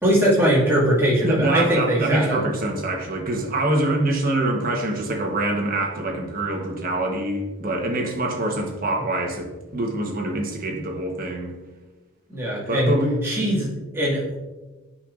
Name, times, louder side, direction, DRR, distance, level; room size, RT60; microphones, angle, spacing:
voice 1, 0.0-2.4 12.3-12.9 13.2-14.4, equal, 10° right, -7 dB, 2.0 m, -21 dB
voice 2, 1.2-11.5 12.7-13.1 13.5-13.6, right 1 dB, 40° right, 1 dB, 1.1 m, -25 dB
9.1 x 5.4 x 2.5 m, 1.2 s
head